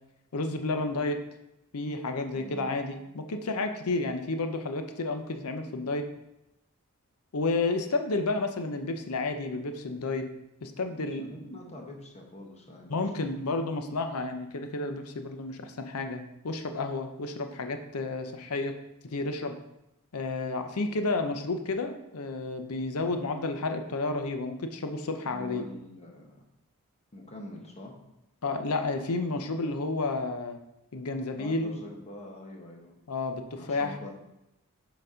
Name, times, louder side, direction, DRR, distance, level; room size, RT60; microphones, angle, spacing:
voice 1, 0.3-1.2 1.7-6.0 7.3-10.3 10.6-11.3 12.9-18.7 19.1-19.6 20.1-25.6 28.4-30.6 30.9-31.8 33.1-34.0, left 3 dB, 85° left, 6 dB, 0.7 m, -31 dB
voice 2, 2.3-2.8 10.9-13.3 25.2-26.4 27.1-28.0 31.4-32.9 33.5-34.1, left 1 dB, 30° left, 0 dB, 1.0 m, -45 dB
6.7 x 4.1 x 4.9 m, 0.88 s
head